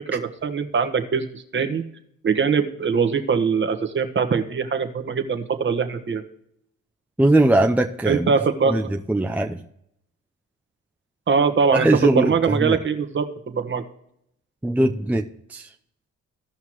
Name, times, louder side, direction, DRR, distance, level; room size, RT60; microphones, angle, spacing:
voice 1, 0.0-1.8 2.2-6.2 8.1-8.9 11.3-13.8, right 5 dB, 40° right, 8 dB, 1.3 m, -22 dB
voice 2, 7.2-8.3 8.7-9.6 11.7-12.8 14.6-15.7, right 1 dB, 5° right, 4 dB, 0.6 m, -20 dB
16.0 x 5.7 x 3.0 m, 0.74 s
cardioid pair, 90°, 30 cm